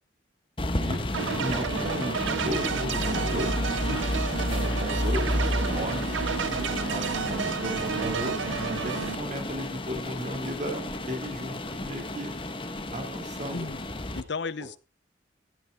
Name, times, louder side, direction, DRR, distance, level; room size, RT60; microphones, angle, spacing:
sound 1, 0.6-14.2, left 1 dB, 25° left, 1.2 m, -31 dB
voice 1, 0.7-1.0 1.4-2.2 2.4-3.5 4.5-6.1 6.6-8.4 8.8-12.3 12.9-13.7, equal, 40° right, 2.3 m, -35 dB
sound 2, 1.1-9.2, right 6 dB, 80° right, 0.6 m, -31 dB
voice 2, 8.5-9.0 13.5-13.9 14.1-14.8, left 4 dB, 65° left, 0.7 m, -35 dB
15.0 x 9.0 x 3.6 m
head